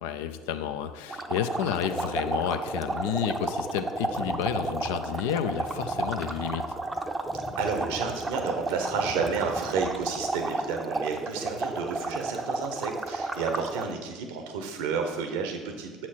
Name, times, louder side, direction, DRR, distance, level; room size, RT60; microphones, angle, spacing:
voice 1, 0.0-6.7, left 9 dB, 70° left, 9 dB, 0.4 m, -30 dB
sound 1, 1.1-13.9, right 2 dB, 20° right, 0.6 m, -32 dB
sound 2, 4.1-10.4, left 3 dB, 25° left, 0.6 m, -45 dB
voice 2, 7.6-16.1, right 5 dB, 70° right, 4 dB, 0.9 m, -31 dB
7.4 x 4.4 x 4.2 m, 1.4 s
figure-of-eight pair, 65°, 0 cm